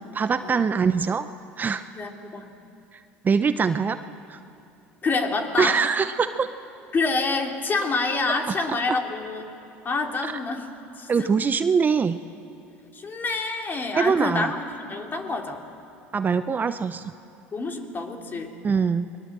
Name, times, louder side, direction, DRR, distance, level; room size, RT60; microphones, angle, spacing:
voice 1, 0.1-1.3 1.6-1.8 2.9-4.0 4.3-4.4 5.6-6.5 8.5-8.6 8.9-9.0 10.2-10.3 11.1-12.2 13.9-14.5 16.1-17.0 18.6-19.1, right 5 dB, 30° right, 11 dB, 0.8 m, -23 dB
voice 2, 1.9-2.5 5.0-5.8 6.9-9.6 9.8-10.7 11.0-11.3 12.9-14.6 14.8-15.6 17.5-18.5, left 3 dB, 30° left, 3 dB, 3.2 m, -27 dB
29.0 x 22.0 x 7.6 m, 2.7 s
hypercardioid pair, 80°, 6 cm